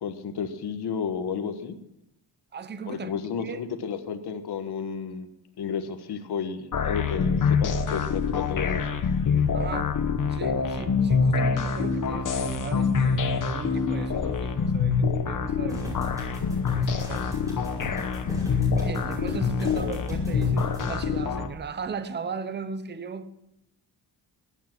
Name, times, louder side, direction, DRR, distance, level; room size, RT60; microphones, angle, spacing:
voice 1, 0.0-1.8 2.9-5.3 5.6-8.9 19.6-19.7, left 6 dB, 70° left, 7 dB, 1.4 m, -32 dB
voice 2, 2.5-3.1 3.4-3.6 9.5-9.9 10.3-16.1 16.7-17.5 18.7-23.3, right 5 dB, 25° right, 12 dB, 0.8 m, -37 dB
sound 1, 6.7-21.5, left 5 dB, 50° left, 1.4 m, -25 dB
sound 2, 15.7-20.8, equal, 10° right, 5.5 m, -40 dB
16.0 x 11.5 x 6.1 m, 0.83 s
wide cardioid pair, 160°, 41 cm